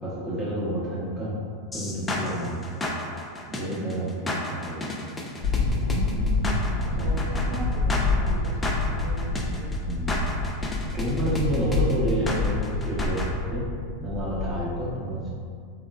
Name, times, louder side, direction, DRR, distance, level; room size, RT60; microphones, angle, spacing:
voice 1, 0.0-1.4 1.7-2.6 3.5-4.8 7.0-7.1 9.8-10.2 10.9-13.2 13.5-13.7 14.0-15.3, right 1 dB, 5° right, -9 dB, 0.9 m, -29 dB
sound 1, 1.7-13.3, left 2 dB, 15° left, 0.3 m, -33 dB
sound 2, 5.4-14.7, left 3 dB, 55° left, 0.8 m, -27 dB
voice 2, 5.8-9.7, right 3 dB, 75° right, -3 dB, 0.5 m, -38 dB
3.5 x 2.1 x 2.3 m, 2.2 s
hypercardioid pair, 120°, 0 cm